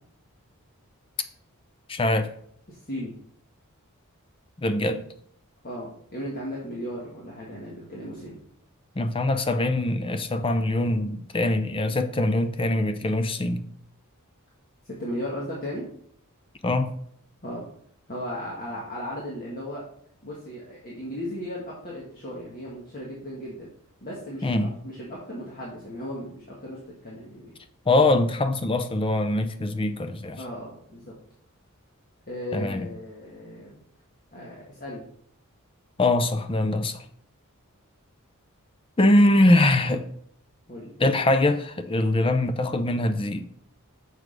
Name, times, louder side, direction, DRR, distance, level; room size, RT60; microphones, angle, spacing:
voice 1, 1.9-2.3 4.6-5.0 9.0-13.6 16.6-16.9 24.4-24.7 27.9-30.4 32.5-32.9 36.0-37.0 39.0-40.1 41.0-43.5, left 1 dB, 25° left, 0.5 m, -23 dB
voice 2, 2.7-3.1 5.6-8.4 14.8-15.9 17.4-17.6 18.1-19.8 20.2-23.7 24.0-24.6 24.8-27.5 30.4-31.1 32.3-33.8 34.3-35.1 40.7-40.9, equal, 40° left, 1.6 m, -36 dB
6.4 x 4.9 x 5.0 m
head